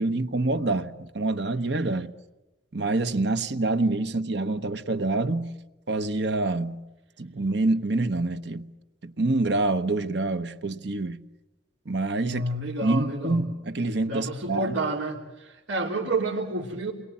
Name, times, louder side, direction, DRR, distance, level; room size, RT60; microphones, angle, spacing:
voice 1, 0.0-2.1 2.7-5.5 5.9-6.8 7.2-8.7 9.0-11.2 11.8-12.4 12.8-14.7, right 2 dB, 60° right, 1.1 m, -26 dB
voice 2, 12.3-13.4 14.1-16.9, right 2 dB, 85° right, 3.3 m, -29 dB
29.0 x 22.5 x 8.6 m
head